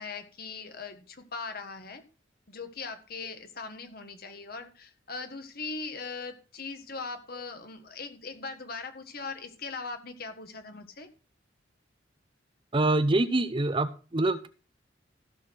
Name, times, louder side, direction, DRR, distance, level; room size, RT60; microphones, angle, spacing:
voice 1, 0.0-2.0 2.5-11.1, left 4 dB, 55° left, 8 dB, 1.5 m, -40 dB
voice 2, 12.7-14.5, right 2 dB, 30° right, 12 dB, 0.6 m, -25 dB
14.5 x 6.5 x 4.4 m, 0.36 s
head